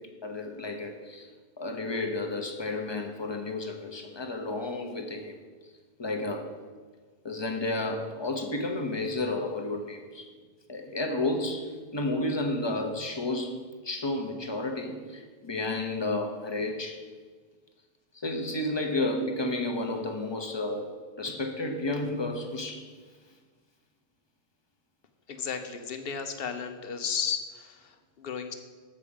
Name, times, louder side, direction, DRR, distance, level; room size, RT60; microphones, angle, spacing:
voice 1, 0.2-1.3 1.6-5.4 6.0-6.5 7.2-10.3 10.7-13.6 13.8-17.0 18.2-20.9 21.2-22.9, left 2 dB, 30° left, 4 dB, 0.9 m, -31 dB
voice 2, 25.3-28.5, left 6 dB, 70° left, 7 dB, 1.0 m, -34 dB
7.5 x 4.9 x 7.1 m, 1.5 s
omnidirectional pair, 1.0 m